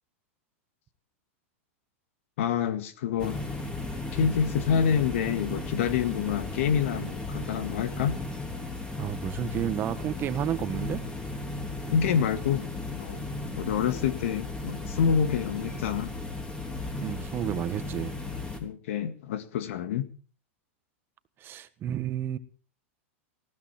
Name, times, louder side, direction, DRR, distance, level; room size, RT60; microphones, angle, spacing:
voice 1, 2.4-3.4 4.1-8.2 11.9-13.3 13.6-16.1 18.6-20.1, left 7 dB, 70° left, 1.9 m, -27 dB
sound 1, 3.2-18.6, left 2 dB, 10° left, 3.3 m, -35 dB
voice 2, 9.0-11.0 17.0-18.1 21.4-22.4, right 10 dB, 30° right, 1.4 m, -31 dB
19.5 x 15.5 x 4.4 m
hypercardioid pair, 125°, 7 cm